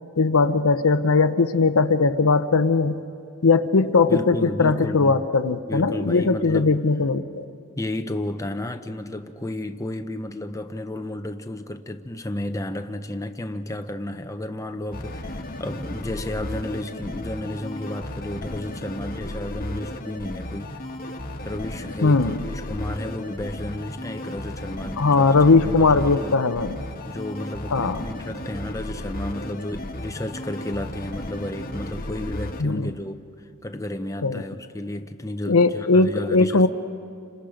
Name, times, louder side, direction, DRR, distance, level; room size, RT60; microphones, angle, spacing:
voice 1, 0.2-3.0 3.4-7.4 22.0-22.4 25.0-26.8 27.7-28.0 32.6-32.9 34.2-34.4 35.5-36.7, left 4 dB, 70° left, 0.8 m, -19 dB
voice 2, 4.1-5.2 5.7-6.8 7.8-20.8 21.4-26.4 27.0-33.2 33.6-36.7, left 1 dB, 15° left, 0.8 m, -32 dB
sound 1, 14.9-32.6, left 1 dB, 40° left, 1.3 m, -34 dB
30.0 x 26.5 x 5.1 m
head